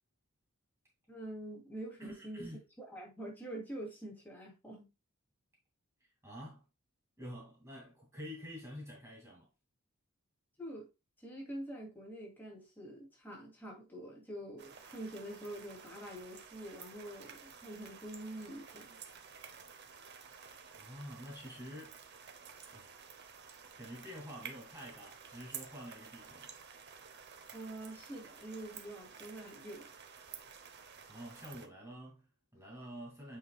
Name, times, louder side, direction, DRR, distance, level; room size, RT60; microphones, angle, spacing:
voice 1, 1.1-2.5 2.8-4.9 10.6-10.9 11.2-19.0 27.5-29.9, right 1 dB, 10° left, 2.6 m, -46 dB
voice 2, 2.0-2.6 6.2-6.7 7.2-9.5 20.8-22.0 22.7-23.1 23.8-26.5 31.1-33.4, equal, 15° right, 2.3 m, -48 dB
sound 1, 14.6-31.7, right 7 dB, 50° right, 0.9 m, -52 dB
8.5 x 5.7 x 2.3 m
head